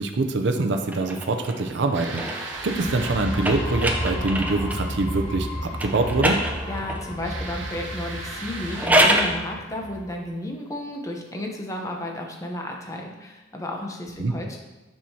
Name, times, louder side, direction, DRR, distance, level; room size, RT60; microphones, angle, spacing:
voice 1, 0.0-6.4 14.2-14.3, right 2 dB, 70° right, 5 dB, 0.5 m, -25 dB
sound 1, 0.8-4.9 5.7-7.1 8.5-9.4, right 1 dB, 10° right, 0.5 m, -26 dB
sound 2, 1.9-5.2 7.2-8.9, right 2 dB, 85° right, 1.0 m, -38 dB
sound 3, 2.5-10.2, left 1 dB, 90° left, 2.0 m, -33 dB
voice 2, 6.7-14.6, left 1 dB, 20° left, 1 dB, 0.8 m, -33 dB
7.4 x 5.6 x 2.8 m, 1.1 s
head